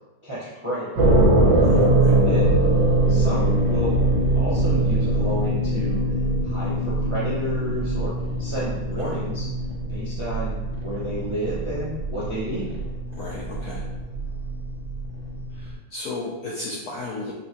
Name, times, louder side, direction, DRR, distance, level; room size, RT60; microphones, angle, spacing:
voice 1, 0.2-1.3 2.2-2.5 3.0-4.0 4.3-8.1 8.4-9.5 9.9-12.7, right 1 dB, 40° right, -9 dB, 0.4 m, -31 dB
sound 1, 0.9-15.7, right 1 dB, 80° right, 1.8 m, -22 dB
voice 2, 1.6-2.2 9.0-9.2 13.1-13.9 15.5-17.3, left 2 dB, 75° left, -4 dB, 0.8 m, -34 dB
5.5 x 2.2 x 2.8 m, 1.1 s
omnidirectional pair, 2.1 m